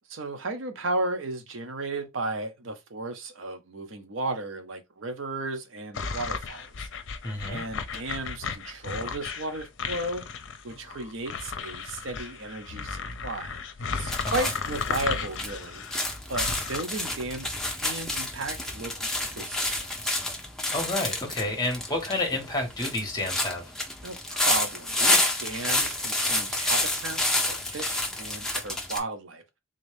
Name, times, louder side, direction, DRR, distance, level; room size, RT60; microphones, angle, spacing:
voice 1, 0.1-6.9 7.5-10.3 10.6-13.6 14.0-16.0 16.3-19.7 20.0-20.2 24.0-29.4, right 2 dB, 70° right, 0.7 m, -34 dB
sound 1, 5.9-16.8, left 5 dB, 65° left, 0.6 m, -35 dB
voice 2, 7.2-7.6 14.2-14.5 20.7-23.6, left 2 dB, 20° left, 1.2 m, -30 dB
sound 2, 14.1-29.0, left 1 dB, ahead, 0.6 m, -29 dB
3.7 x 2.6 x 3.3 m
head